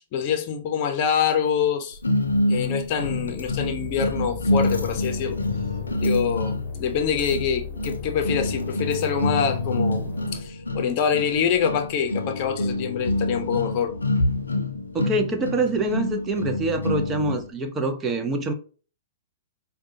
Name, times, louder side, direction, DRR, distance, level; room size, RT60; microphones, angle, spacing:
voice 1, 0.0-2.0 2.5-5.4 6.0-13.9, left 7 dB, 45° left, 0.7 m, -25 dB
sound 1, 2.0-17.5, left 2 dB, 85° left, 0.5 m, -27 dB
sound 2, 3.0-10.4, left 4 dB, 25° left, 1.1 m, -36 dB
voice 2, 14.9-18.5, right 2 dB, 20° right, 0.6 m, -25 dB
4.8 x 2.3 x 2.7 m
figure-of-eight pair, 110°, 0 cm